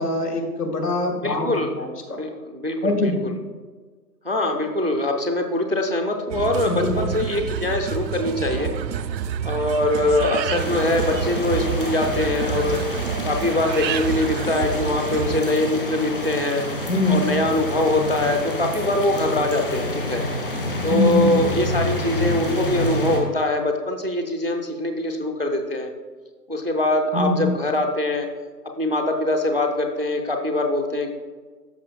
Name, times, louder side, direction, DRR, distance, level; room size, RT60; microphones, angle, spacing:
voice 1, 0.0-2.2 2.8-3.2 6.6-7.0 16.9-17.2 20.9-21.4 27.1-27.4, left 2 dB, 65° left, 3 dB, 1.6 m, -23 dB
voice 2, 1.2-1.7 2.1-3.3 4.2-8.7 9.4-12.8 13.2-16.6 17.1-20.2 20.8-25.9 26.5-28.3 28.6-31.1, left 1 dB, 40° right, 4 dB, 0.4 m, -23 dB
sound 1, 6.3-15.4, right 8 dB, 90° right, 0.6 m, -28 dB
sound 2, 10.6-23.2, left 1 dB, 35° left, 0.7 m, -28 dB
13.0 x 5.7 x 2.2 m, 1.5 s
hypercardioid pair, 165°, 50 cm